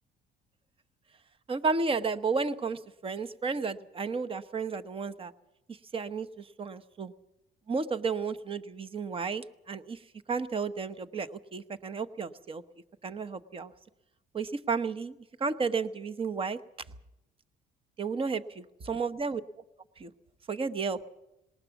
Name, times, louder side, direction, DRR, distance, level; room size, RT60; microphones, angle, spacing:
voice 1, 1.5-5.3 5.9-7.1 7.7-10.0 10.3-12.6 13.0-13.7 14.3-15.1 15.4-16.6 18.0-19.4 20.0-20.1 20.5-21.0, right 4 dB, 35° right, 13 dB, 1.0 m, -32 dB
19.5 x 19.0 x 7.2 m, 0.91 s
cardioid pair, 110°, 17 cm